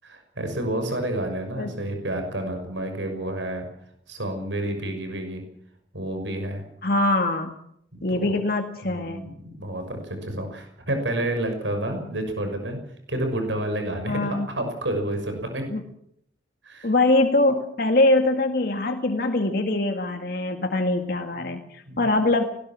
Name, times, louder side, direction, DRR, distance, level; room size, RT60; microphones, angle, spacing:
voice 1, 0.0-3.7 4.1-5.4 5.9-6.6 8.1-8.2 8.8-12.8 13.1-15.6 16.6-16.9 21.4-21.6 21.9-22.1, right 1 dB, 90° right, 6 dB, 6.1 m, -29 dB
voice 2, 6.8-7.6 8.0-9.2 14.1-14.5 15.7-15.8 16.8-22.4, left 2 dB, 55° left, 4 dB, 2.0 m, -23 dB
20.5 x 19.5 x 7.4 m, 0.70 s
head